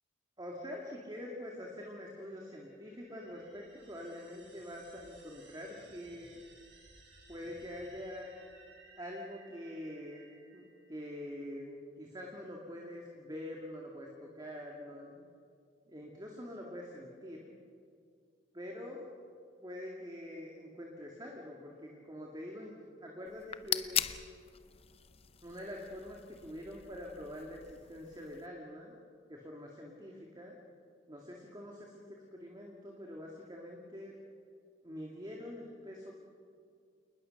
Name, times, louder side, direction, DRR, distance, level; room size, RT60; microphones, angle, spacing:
voice 1, 0.4-6.4 7.3-8.3 9.0-10.2 10.5-15.2 15.9-17.5 18.5-19.1 19.6-22.7 23.0-24.1 25.4-28.9 29.3-30.5 31.1-34.2 34.8-36.1, left 1 dB, 20° right, -1 dB, 2.1 m, -45 dB
sound 1, 2.2-11.5, right 3 dB, 70° right, 6.5 m, -61 dB
sound 2, 23.3-28.5, left 9 dB, 30° left, 0.7 m, -40 dB
28.5 x 20.5 x 6.5 m, 2.4 s
head